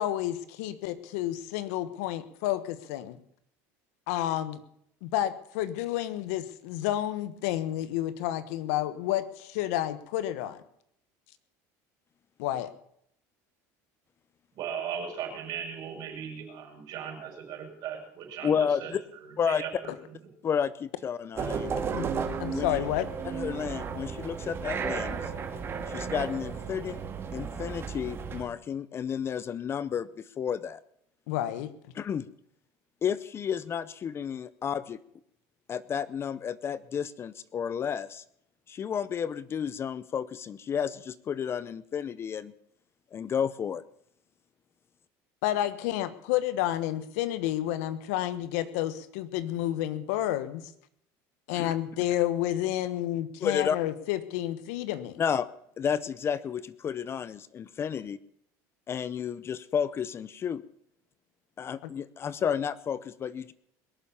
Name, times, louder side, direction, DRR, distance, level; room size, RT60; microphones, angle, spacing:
voice 1, 0.0-3.2 4.1-4.6 5.0-10.6 12.4-12.7 21.9-22.1 22.4-23.1 31.3-31.7 45.4-50.7 51.5-55.2 61.8-61.9, left 13 dB, 85° left, 14 dB, 1.2 m, -30 dB
voice 2, 14.6-18.9 19.5-19.9, right 8 dB, 60° right, 2 dB, 5.5 m, -37 dB
voice 3, 18.4-19.0 19.4-19.6 20.4-21.8 22.5-22.7 23.2-25.3 25.9-27.0 27.3-30.8 32.0-32.3 33.0-35.0 35.7-38.2 38.7-42.5 43.1-43.8 51.5-51.7 53.4-53.8 55.2-55.5 55.8-58.2 58.9-60.6 61.6-63.5, left 7 dB, 30° left, 18 dB, 0.6 m, -31 dB
sound 1, 21.4-28.4, right 6 dB, 30° right, 2.1 m, -34 dB
21.5 x 7.2 x 7.0 m, 0.70 s
supercardioid pair, 120°, 8 cm